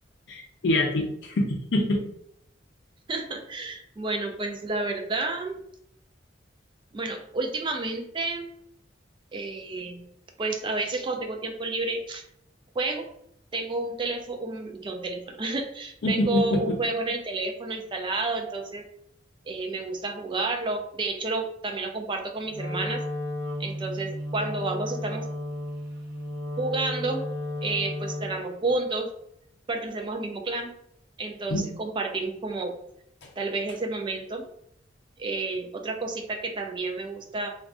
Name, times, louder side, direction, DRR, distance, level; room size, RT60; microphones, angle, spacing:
voice 1, 0.3-2.0 16.0-16.8 31.5-31.6 33.2-33.3, left 1 dB, 70° left, 0 dB, 0.5 m, -25 dB
voice 2, 3.1-5.6 6.9-8.5 9.3-10.1 10.4-12.2 12.8-13.1 13.5-18.8 19.5-23.0 23.6-25.3 26.6-27.3 27.6-29.1 29.7-30.7 31.2-32.7 33.4-34.4 35.2-37.5, right 3 dB, 25° right, 3 dB, 0.3 m, -30 dB
Wind instrument woodwind instrument, 22.5-28.5, left 1 dB, 70° right, 0.6 m, -33 dB
2.4 x 2.3 x 3.5 m, 0.72 s
head